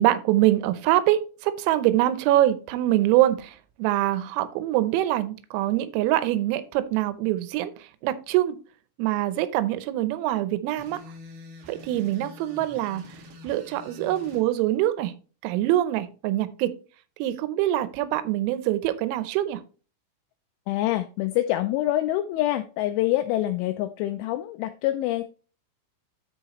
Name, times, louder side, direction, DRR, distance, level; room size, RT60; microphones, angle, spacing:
voice 1, 0.0-8.6 9.0-11.0 11.7-13.0 13.4-15.1 15.4-16.7 17.2-19.6, right 14 dB, 90° right, 13 dB, 3.5 m, -24 dB
sound 1, 10.8-14.4, left 2 dB, 55° right, 3.5 m, -46 dB
voice 2, 20.7-25.2, left 14 dB, 85° left, 8 dB, 2.8 m, -26 dB
13.0 x 4.7 x 3.0 m, 0.36 s
omnidirectional pair, 5.9 m